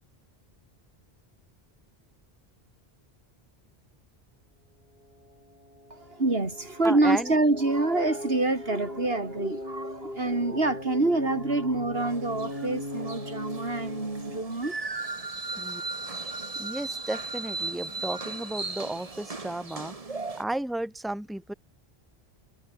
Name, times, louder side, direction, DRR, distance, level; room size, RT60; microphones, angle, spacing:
sound 1, 5.0-14.4, left 1 dB, 55° left, 8.0 m, -39 dB
voice 1, 5.9-14.8, right 2 dB, 70° right, 3.8 m, -26 dB
voice 2, 6.8-7.3 15.6-15.8 16.6-19.9 20.4-21.5, right 1 dB, ahead, 2.1 m, -33 dB
sound 2, 11.9-20.4, right 3 dB, 35° right, 1.5 m, -37 dB
omnidirectional pair, 1.1 m